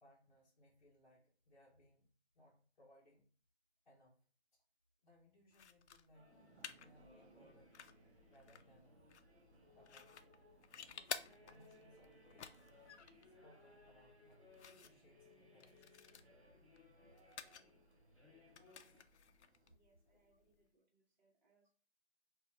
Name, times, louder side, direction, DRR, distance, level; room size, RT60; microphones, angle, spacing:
voice 1, 0.0-3.3 3.9-4.3 4.5-4.6 5.0-6.4 6.8-7.8 8.3-9.2 9.7-10.5 10.9-12.7 13.3-16.4 20.1-20.4, equal, 45° left, -5 dB, 0.8 m, -69 dB
sound 1, 5.5-20.7, left 7 dB, 90° left, 0.5 m, -55 dB
sound 2, 6.1-19.0, left 2 dB, ahead, 1.1 m, -66 dB
sound 3, 6.3-19.8, right 3 dB, 80° right, 0.6 m, -70 dB
voice 2, 19.7-21.7, right 3 dB, 45° right, -2 dB, 0.9 m, -78 dB
2.7 x 2.3 x 3.8 m, 0.39 s
figure-of-eight pair, 170°, 33 cm